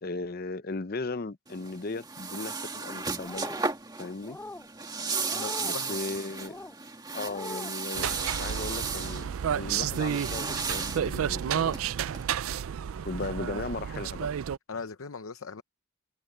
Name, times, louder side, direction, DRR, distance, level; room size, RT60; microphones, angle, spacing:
voice 1, 0.0-3.5 4.0-4.4 5.6-6.6 7.1-8.1 8.4-11.8 13.0-14.3, left 3 dB, 45° left, 0.7 m, -37 dB
sound 1, 1.5-12.2, right 4 dB, 20° right, 1.8 m, -35 dB
sound 2, 3.2-3.7 4.2-4.7 5.2-5.8 6.4-6.7 7.2-7.8, left 2 dB, 10° left, 0.3 m, -42 dB
voice 2, 5.3-6.0 14.7-15.6, left 5 dB, 85° left, 0.8 m, -39 dB
sound 3, 7.9-14.6, right 8 dB, 80° right, 0.4 m, -31 dB
head